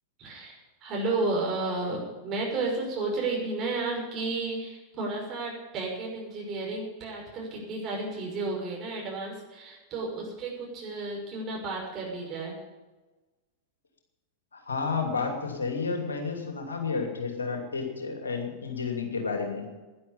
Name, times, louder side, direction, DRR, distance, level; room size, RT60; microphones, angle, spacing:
voice 1, 0.2-12.5, right 3 dB, 35° right, -1 dB, 6.0 m, -32 dB
voice 2, 14.5-19.6, left 4 dB, 70° left, 3 dB, 2.8 m, -31 dB
11.5 x 10.5 x 8.6 m, 1.2 s
figure-of-eight pair, 90°, 0 cm